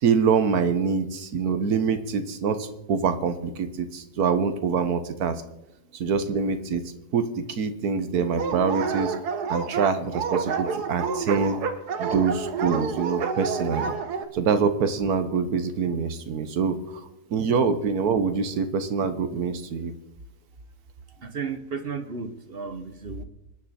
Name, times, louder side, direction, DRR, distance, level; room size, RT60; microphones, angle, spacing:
voice 1, 0.0-5.4 5.9-9.1 9.5-11.6 12.0-13.9 14.3-17.0 17.3-19.9, right 5 dB, 75° right, 9 dB, 1.6 m, -25 dB
Dog, 8.4-14.3, right 5 dB, 90° right, 1.6 m, -28 dB
voice 2, 21.2-23.2, right 5 dB, 40° right, 10 dB, 1.2 m, -33 dB
26.0 x 10.5 x 4.3 m, 0.86 s
omnidirectional pair, 1.6 m